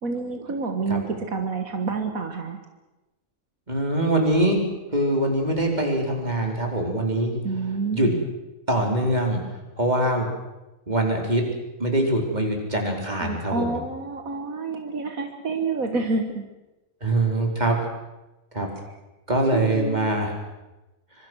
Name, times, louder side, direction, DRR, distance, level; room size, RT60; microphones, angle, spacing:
voice 1, 0.0-2.6 7.4-8.3 13.2-16.5 19.5-20.1, right 4 dB, 80° right, 5 dB, 2.1 m, -28 dB
voice 2, 3.7-4.6 4.9-7.4 7.9-8.1 8.7-9.4 9.8-10.3 10.9-11.4 11.8-13.8 17.0-17.8 18.5-18.7 19.3-20.3, right 1 dB, 30° right, 1 dB, 4.7 m, -23 dB
25.5 x 24.5 x 6.4 m, 1.0 s
omnidirectional pair, 1.4 m